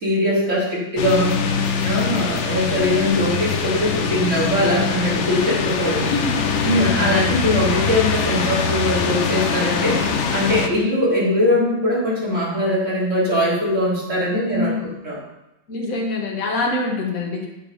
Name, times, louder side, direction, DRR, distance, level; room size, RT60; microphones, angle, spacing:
voice 1, 0.0-1.4 1.8-6.1 6.6-15.2, left 1 dB, 35° right, -7 dB, 3.9 m, -21 dB
sound 1, 1.0-10.7, left 6 dB, 80° left, 0.6 m, -23 dB
voice 2, 5.9-7.4 14.5-14.9 15.7-17.5, left 2 dB, 45° left, -2 dB, 2.0 m, -26 dB
8.4 x 7.3 x 5.0 m, 0.91 s
omnidirectional pair, 2.2 m